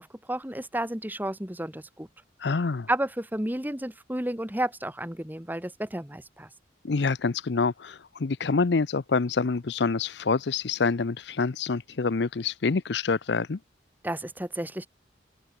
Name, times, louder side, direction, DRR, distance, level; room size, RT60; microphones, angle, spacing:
voice 1, 0.0-2.1 2.9-6.5 14.0-14.9, right 1 dB, 10° right, 1.5 m, -32 dB
voice 2, 2.4-2.9 6.8-13.6, left 4 dB, 70° left, 0.6 m, -26 dB
head